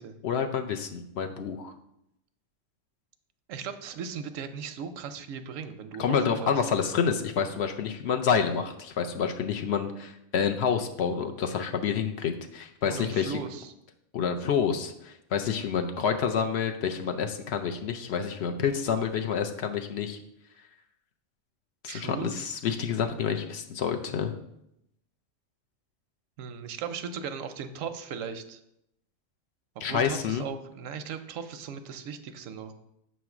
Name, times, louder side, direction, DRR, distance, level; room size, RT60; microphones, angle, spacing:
voice 1, 0.2-1.7 6.0-13.4 14.1-20.2 21.8-24.3 29.8-30.4, left 7 dB, 65° left, 5 dB, 0.8 m, -28 dB
voice 2, 3.5-6.6 12.9-13.7 21.9-22.3 26.4-28.6 29.8-32.7, right 6 dB, 85° right, 9 dB, 1.0 m, -37 dB
7.3 x 3.1 x 5.9 m, 0.81 s
omnidirectional pair, 1.3 m